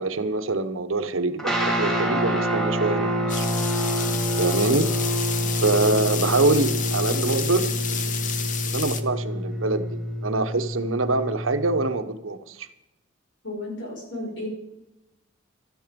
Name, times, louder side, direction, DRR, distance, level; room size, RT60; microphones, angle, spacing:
voice 1, 0.0-3.4 4.4-4.9 5.6-12.7, right 3 dB, 85° right, 9 dB, 1.1 m, -25 dB
sound 1, 1.4-11.9, equal, ahead, 2.4 m, -27 dB
sound 2, 3.3-9.0, left 8 dB, 40° left, 1.0 m, -30 dB
voice 2, 13.4-14.5, left 1 dB, 65° left, 0 dB, 5.9 m, -34 dB
16.0 x 12.5 x 5.3 m, 0.91 s
head